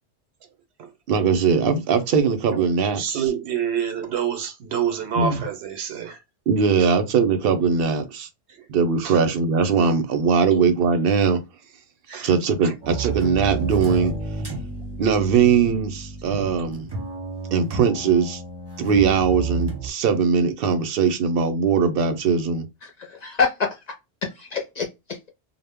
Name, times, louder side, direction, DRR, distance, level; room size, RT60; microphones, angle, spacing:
voice 1, 1.1-3.2 5.2-5.4 6.5-8.3 8.7-11.4 12.2-14.1 15.0-16.9 17.5-18.4 18.8-22.7, right 6 dB, 65° right, 0.7 m, -20 dB
voice 2, 3.0-6.2 6.8-6.9 8.5-8.7 9.0-9.2 12.1-12.3 12.6-12.7 16.3-16.6, right 8 dB, 90° right, 0.9 m, -27 dB
sound 1, 12.8-19.9, right 4 dB, 30° right, 0.5 m, -31 dB
voice 3, 22.8-23.8 24.2-25.3, left 5 dB, 50° left, 0.5 m, -26 dB
2.0 x 2.0 x 3.3 m
omnidirectional pair, 1.1 m